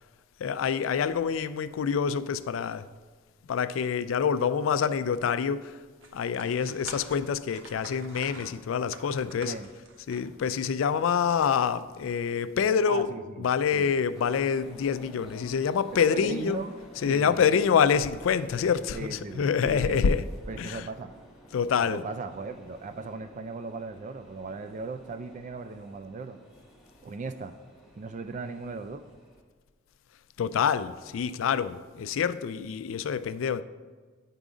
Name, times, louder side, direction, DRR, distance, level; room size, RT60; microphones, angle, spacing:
voice 1, 0.4-2.9 3.5-5.8 6.1-9.5 10.1-13.1 13.4-16.6 17.0-20.3 20.6-20.8 21.5-22.0 30.4-33.6, left 7 dB, 80° left, 0.3 m, -26 dB
sound 1, 6.0-12.1, right 3 dB, 70° right, 0.9 m, -47 dB
voice 2, 12.9-13.9 15.9-16.8 17.1-17.5 18.9-20.2 20.5-21.1 21.9-26.4 27.0-27.6 28.0-29.1, right 4 dB, 40° right, 0.3 m, -38 dB
sound 2, 14.1-29.4, equal, ahead, 1.3 m, -53 dB
9.3 x 3.8 x 4.9 m
head